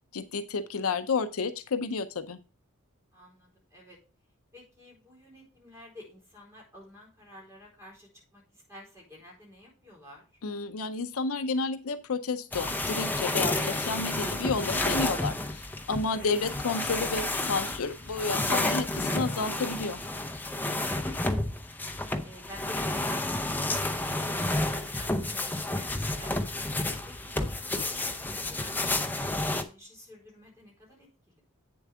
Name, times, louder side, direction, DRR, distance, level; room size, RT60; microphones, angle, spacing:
voice 1, 0.1-2.4 10.4-15.6 15.9-20.0, left 4 dB, 65° left, 10 dB, 0.6 m, -31 dB
voice 2, 3.1-4.0 4.5-10.3 16.1-16.3 22.2-26.3 27.1-31.5, left 1 dB, 15° right, -3 dB, 4.2 m, -50 dB
sound 1, 12.5-29.6, left 2 dB, 10° left, 0.6 m, -31 dB
8.5 x 7.0 x 3.5 m, 0.33 s
head